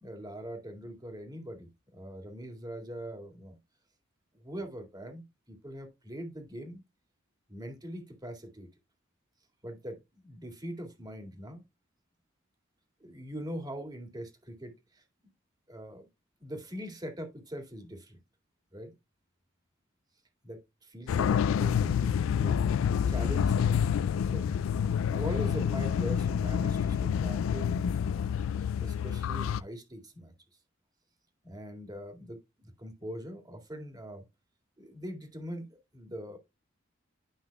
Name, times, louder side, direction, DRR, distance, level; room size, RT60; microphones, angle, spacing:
voice 1, 0.0-3.6 4.4-6.8 7.5-8.7 9.6-11.6 13.0-15.0 15.7-16.1 16.4-18.2 18.7-18.9 20.4-22.6 23.1-23.9 24.2-24.5 25.1-28.2 28.8-30.3 31.4-34.2 34.8-36.4, equal, 20° right, 2.1 m, -42 dB
sound 1, 21.1-29.6, left 7 dB, 75° left, 0.3 m, -28 dB
11.0 x 5.6 x 2.2 m
head